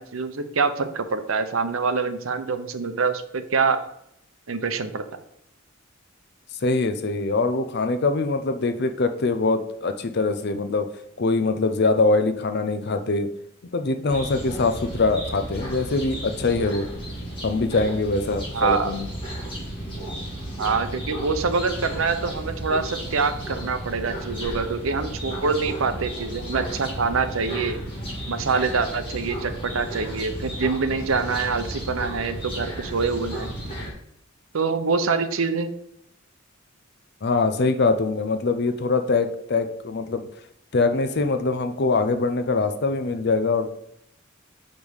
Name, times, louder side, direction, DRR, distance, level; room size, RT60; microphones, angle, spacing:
voice 1, 0.0-3.8 4.5-5.2 18.5-18.9 20.6-27.8 28.3-33.5 34.5-35.7, right 4 dB, 85° right, 8 dB, 0.8 m, -25 dB
voice 2, 6.6-10.9 11.2-13.3 13.7-16.9 17.4-19.1 37.2-40.3 40.7-43.7, left 3 dB, 55° left, 8 dB, 0.6 m, -23 dB
sound 1, 14.1-33.9, right 1 dB, 25° left, 2.7 m, -33 dB
5.3 x 5.3 x 6.3 m, 0.73 s
head